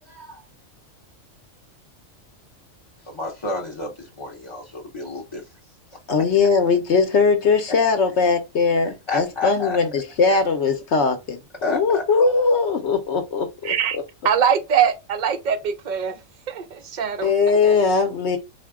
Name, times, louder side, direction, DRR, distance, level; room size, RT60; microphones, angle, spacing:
voice 1, 0.1-0.5 3.1-5.4 8.8-9.8 11.6-12.0, left 3 dB, 35° left, 0.5 m, -30 dB
voice 2, 6.1-14.0 17.2-18.4, left 4 dB, 65° left, 0.8 m, -20 dB
voice 3, 13.6-14.0 14.2-16.2 16.5-17.3 17.6-17.8, right 8 dB, 70° right, 0.4 m, -22 dB
4.1 x 2.1 x 3.4 m
omnidirectional pair, 1.4 m